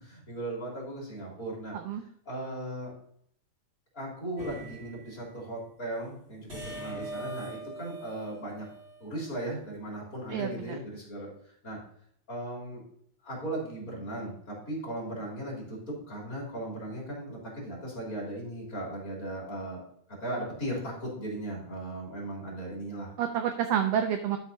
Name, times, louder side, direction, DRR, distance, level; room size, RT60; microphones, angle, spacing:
voice 1, 0.0-1.7 2.2-2.9 3.9-8.7 9.0-11.3 11.6-11.8 12.3-12.8 13.2-19.8 20.2-23.1, right 1 dB, 30° left, -3 dB, 3.2 m, -37 dB
sound 1, 4.4-5.3 6.5-9.3, right 1 dB, 20° right, 2.7 m, -42 dB
voice 2, 10.3-10.8 23.2-24.4, right 9 dB, 80° right, 6 dB, 1.4 m, -29 dB
12.0 x 6.0 x 2.7 m, 0.67 s
omnidirectional pair, 3.5 m